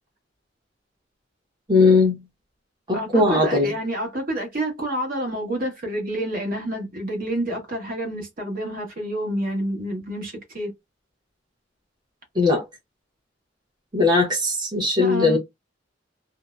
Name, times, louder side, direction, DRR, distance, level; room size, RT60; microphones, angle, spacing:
voice 1, 1.7-2.2 2.9-3.7 12.4-12.6 13.9-15.4, left 3 dB, 25° right, 0.8 m, -19 dB
voice 2, 2.9-10.7 15.0-15.4, right 1 dB, 50° right, 1.0 m, -28 dB
2.6 x 2.0 x 2.3 m
head